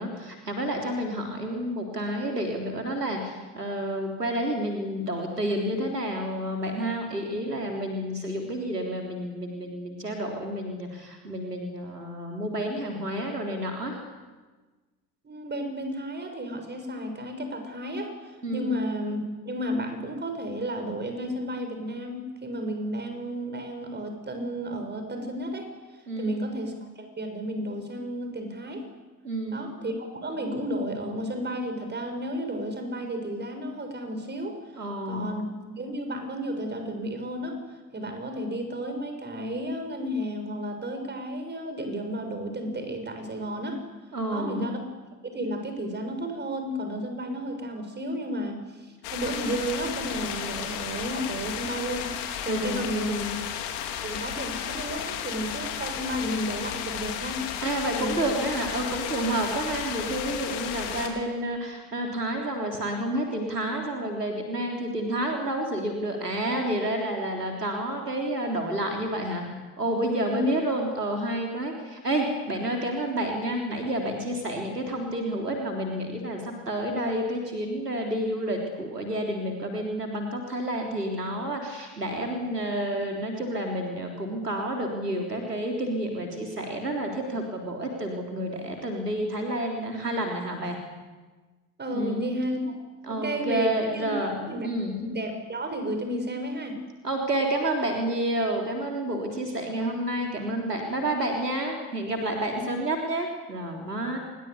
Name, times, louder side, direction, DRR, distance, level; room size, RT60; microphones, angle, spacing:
voice 1, 0.0-14.0 18.4-18.7 26.1-26.4 29.2-29.6 34.8-35.3 44.1-44.7 52.5-53.4 57.6-69.5 69.8-90.8 91.9-92.2 93.1-95.0 97.0-104.2, right 1 dB, 85° right, 2 dB, 3.6 m, -30 dB
voice 2, 15.2-19.2 19.5-25.7 26.2-28.8 29.5-37.6 37.9-43.8 44.3-44.8 45.2-53.1 54.0-57.5 57.9-58.2 70.2-70.5 91.8-92.7 93.1-94.1 94.5-94.7 94.9-96.8 99.6-100.0 104.0-104.2, equal, 20° right, 6 dB, 7.0 m, -32 dB
sound 1, 49.0-61.1, left 9 dB, 55° left, 4.0 m, -33 dB
27.5 x 22.0 x 8.4 m, 1.3 s
figure-of-eight pair, 65°, 46 cm